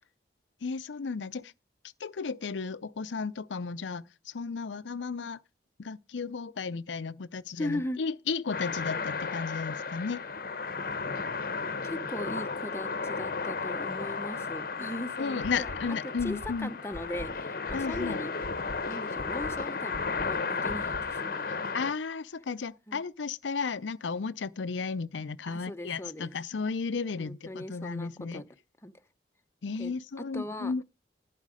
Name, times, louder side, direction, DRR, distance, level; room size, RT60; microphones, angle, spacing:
voice 1, 0.6-1.5 2.0-5.4 5.8-10.2 15.1-16.7 17.7-18.2 21.7-28.4 29.6-30.8, left 5 dB, 90° left, 0.6 m, -34 dB
voice 2, 7.6-8.0 11.8-15.7 16.2-18.3 18.9-21.5 22.9-23.0 25.5-26.3 27.2-28.4 28.8-28.9 29.8-30.8, left 1 dB, 15° left, 0.7 m, -38 dB
sound 1, 8.5-21.9, left 4 dB, 50° left, 0.8 m, -34 dB
sound 2, 15.4-15.8 16.2-16.5 16.9-17.3 17.7-18.0 18.4-18.8 19.2-19.5 19.9-20.3 20.7-21.0, left 1 dB, 65° right, 3.3 m, -41 dB
11.5 x 9.2 x 5.0 m
head